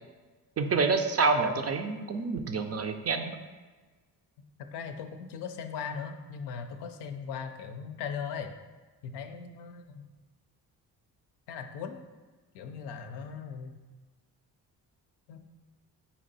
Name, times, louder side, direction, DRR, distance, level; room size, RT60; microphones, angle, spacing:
voice 1, 0.6-3.4, right 4 dB, 35° right, 6 dB, 0.4 m, -27 dB
voice 2, 4.7-8.5 9.0-10.1 11.5-12.0 12.5-13.7 15.3-15.4, left 6 dB, 75° left, 6 dB, 0.5 m, -38 dB
4.3 x 2.8 x 4.0 m, 1.3 s
supercardioid pair, 60°, 42 cm